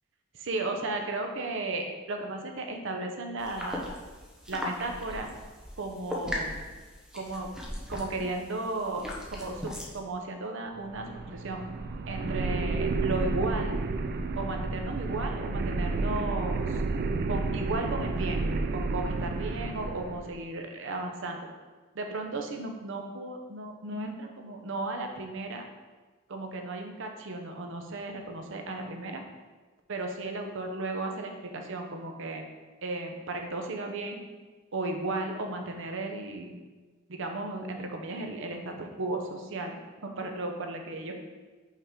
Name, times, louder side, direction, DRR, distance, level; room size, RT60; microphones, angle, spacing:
voice 1, 0.4-3.9 4.5-5.3 5.8-6.6 7.1-7.5 7.9-11.6 12.1-13.8 14.4-16.8 17.3-18.5 18.7-21.4 21.9-25.7 26.3-29.2 29.9-32.4 32.8-34.2 34.7-36.5 37.1-39.8 40.0-41.1, right 2 dB, 65° right, 3 dB, 0.7 m, -35 dB
sound 1, 3.4-10.0, left 1 dB, 5° right, 0.8 m, -39 dB
sound 2, 10.8-20.3, right 3 dB, 50° right, 0.3 m, -31 dB
5.5 x 4.8 x 3.7 m, 1.3 s
head